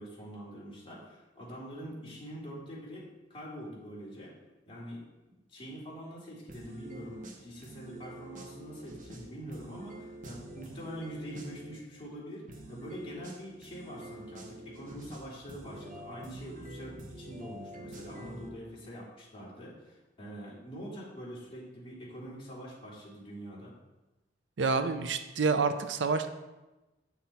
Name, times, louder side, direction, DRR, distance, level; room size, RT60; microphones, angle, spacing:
voice 1, 0.0-4.3 4.7-12.4 12.7-23.7, equal, 30° left, -7 dB, 2.7 m, -44 dB
sound 1, 6.5-11.8 12.5-18.5, right 1 dB, 45° right, 0.9 m, -47 dB
voice 2, 24.6-26.3, right 4 dB, 80° right, 9 dB, 0.5 m, -28 dB
8.1 x 5.8 x 4.2 m, 1.1 s
head